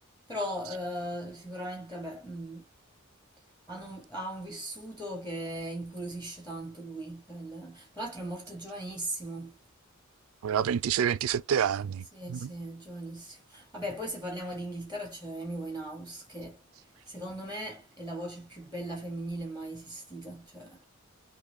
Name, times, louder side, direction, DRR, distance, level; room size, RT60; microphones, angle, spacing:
voice 1, 0.3-2.6 3.7-9.6 12.1-20.8, right 1 dB, 10° left, 0.9 m, -38 dB
voice 2, 10.4-12.5, right 8 dB, 90° right, 0.4 m, -28 dB
3.8 x 2.6 x 2.6 m
head